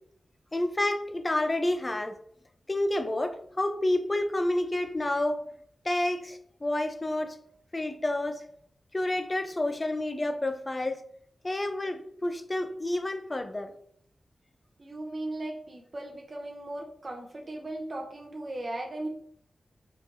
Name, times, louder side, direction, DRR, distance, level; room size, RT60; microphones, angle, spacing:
voice 1, 0.5-2.2 2.7-5.5 5.8-7.4 7.7-8.4 8.9-11.0 11.4-13.7, left 1 dB, 30° left, 8 dB, 0.4 m, -29 dB
voice 2, 14.8-19.1, right 1 dB, 45° right, 1 dB, 0.6 m, -37 dB
3.8 x 2.6 x 3.0 m, 0.65 s
cardioid pair, 55°, 0 cm